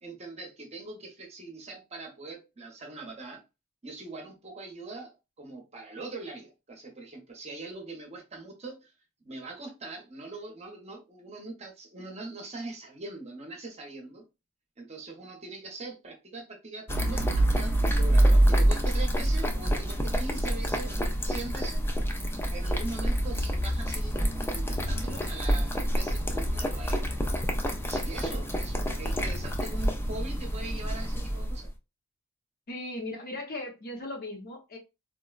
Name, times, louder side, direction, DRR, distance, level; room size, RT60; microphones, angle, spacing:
voice 1, 0.0-3.4 3.8-8.9 9.2-14.2 14.8-21.8 22.5-27.2 27.8-31.7, right 3 dB, 30° right, 0.7 m, -42 dB
sound 1, 16.9-31.7, right 1 dB, 10° left, 0.3 m, -27 dB
voice 2, 32.7-34.8, left 2 dB, 45° left, 0.7 m, -37 dB
3.8 x 2.1 x 2.3 m
head